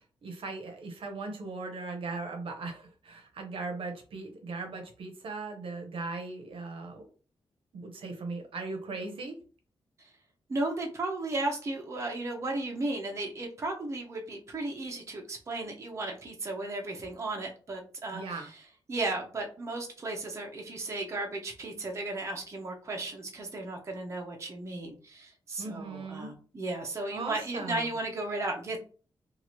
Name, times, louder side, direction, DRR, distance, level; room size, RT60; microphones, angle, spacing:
voice 1, 0.2-7.1 7.7-9.4 18.1-18.5 25.6-26.3 27.1-27.9, right 3 dB, 70° right, 4 dB, 0.7 m, -38 dB
voice 2, 10.5-18.6 18.9-28.8, right 2 dB, 30° right, 1 dB, 0.7 m, -35 dB
2.9 x 2.4 x 3.0 m, 0.37 s
wide cardioid pair, 170°, 9 cm